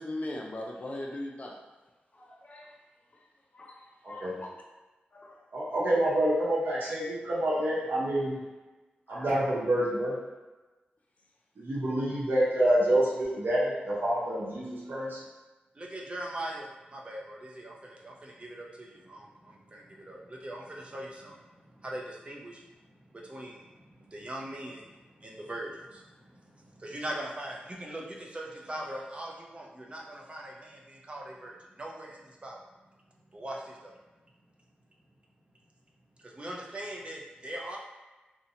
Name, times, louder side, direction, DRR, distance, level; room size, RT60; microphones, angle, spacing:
voice 1, 0.0-1.6 2.1-2.7 3.5-4.5 5.1-5.4 9.1-9.3, left 1 dB, 45° left, -1 dB, 0.4 m, -40 dB
voice 2, 4.0-4.4 5.5-8.4 9.1-10.1 11.6-15.2, right 1 dB, 70° right, -7 dB, 0.8 m, -27 dB
voice 3, 15.7-32.6 33.3-33.9 36.2-37.8, right 1 dB, 35° right, -1 dB, 0.5 m, -41 dB
2.6 x 2.1 x 2.7 m, 1.2 s
cardioid pair, 60°, 4 cm